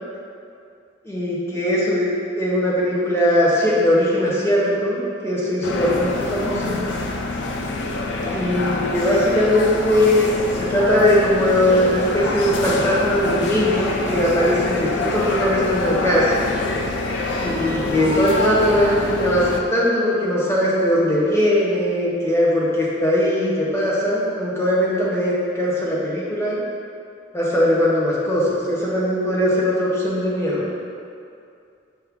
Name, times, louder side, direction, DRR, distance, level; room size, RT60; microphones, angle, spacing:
voice 1, 1.0-2.1 2.4-6.8 8.3-16.4 17.4-26.6 27.3-30.7, equal, 15° left, -7 dB, 0.8 m, -20 dB
sound 1, 5.6-19.6, left 2 dB, 70° left, 0.4 m, -25 dB
5.9 x 2.2 x 3.5 m, 2.4 s
head